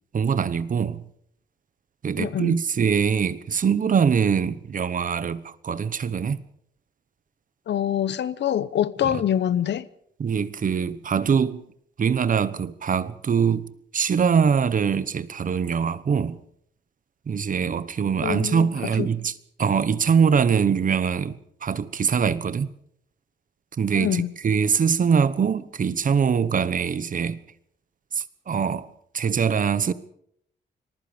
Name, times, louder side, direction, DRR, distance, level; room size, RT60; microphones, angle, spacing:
voice 1, 0.1-1.1 2.0-6.4 9.1-9.2 10.2-11.6 12.0-13.7 13.9-16.4 17.3-19.3 19.6-22.7 23.8-27.4 28.1-28.9 29.1-29.9, right 6 dB, 50° right, 1.1 m, -23 dB
voice 2, 2.2-2.6 7.7-9.9 18.2-18.7 19.0-19.1 23.9-24.3, left 10 dB, 80° left, 0.9 m, -25 dB
26.0 x 20.0 x 5.2 m
wide cardioid pair, 135°, 18 cm